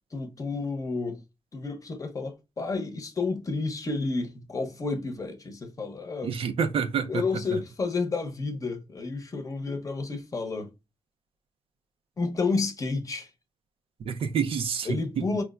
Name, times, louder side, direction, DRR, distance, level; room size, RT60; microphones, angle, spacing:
voice 1, 0.1-1.2 1.5-6.3 7.1-10.7 12.2-13.3 14.8-15.4, left 3 dB, 35° left, 0.7 m, -30 dB
voice 2, 6.2-7.2 14.0-15.3, right 7 dB, 75° right, 0.4 m, -28 dB
4.5 x 2.1 x 2.3 m
cardioid pair, 90°, 10 cm